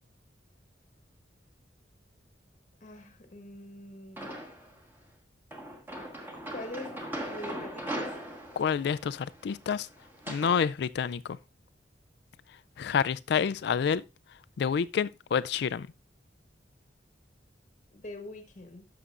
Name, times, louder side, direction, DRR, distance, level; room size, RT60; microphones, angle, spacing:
voice 1, 2.8-4.4 6.5-8.1 17.9-18.9, left 2 dB, 45° left, 1.1 m, -44 dB
sound 1, 4.2-4.8 5.5-10.6, right 1 dB, 10° right, 1.4 m, -39 dB
voice 2, 8.6-9.9 10.3-11.4 12.8-14.0 14.6-15.9, left 7 dB, 65° left, 0.3 m, -28 dB
11.0 x 6.8 x 2.4 m
head